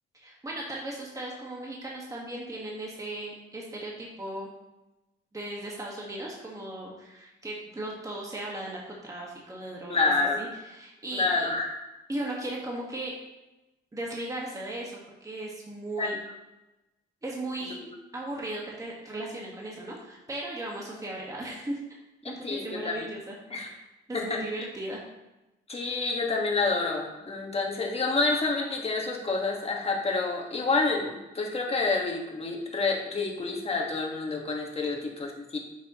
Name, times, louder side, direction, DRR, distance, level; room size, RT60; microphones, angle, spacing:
voice 1, 0.2-4.5 5.3-10.1 10.4-11.5 12.1-13.1 13.9-16.2 17.2-21.8 22.2-23.8 24.1-25.0, right 1 dB, 15° right, -3 dB, 1.6 m, -37 dB
voice 2, 9.9-10.4 11.1-11.7 16.0-16.1 22.2-23.1 23.5-23.7 24.1-24.7 25.7-35.6, left 3 dB, 30° left, 0 dB, 1.6 m, -28 dB
8.3 x 6.1 x 3.0 m, 1.0 s
cardioid pair, 90°, 20 cm